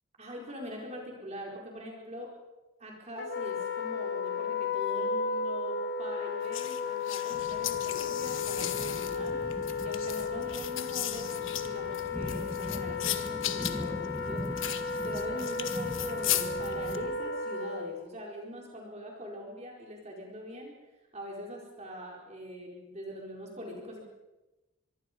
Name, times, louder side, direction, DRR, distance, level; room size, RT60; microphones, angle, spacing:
voice 1, 0.2-2.3 2.8-9.4 9.8-11.3 11.6-14.4 14.9-20.7 21.1-24.0, equal, 35° right, -1 dB, 4.7 m, -42 dB
Wind instrument woodwind instrument, 3.2-18.1, left 5 dB, 55° left, 1.6 m, -34 dB
sound 1, 6.5-17.0, left 12 dB, 75° left, 1.4 m, -36 dB
sound 2, 7.3-17.1, equal, 10° left, 2.0 m, -42 dB
24.5 x 23.5 x 5.3 m, 1.0 s
head